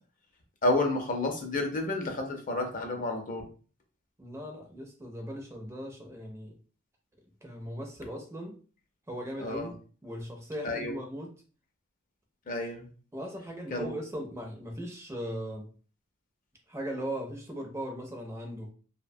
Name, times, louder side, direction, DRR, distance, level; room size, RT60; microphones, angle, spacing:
voice 1, 0.6-3.5 9.4-9.7 10.6-10.9 12.5-12.9 13.7-13.9, left 2 dB, 40° left, 3 dB, 0.5 m, -30 dB
voice 2, 4.2-6.6 7.4-8.6 9.1-9.7 10.0-11.3 13.1-15.7 16.7-18.7, equal, 15° right, 2 dB, 0.4 m, -38 dB
2.6 x 2.1 x 2.6 m, 0.39 s
head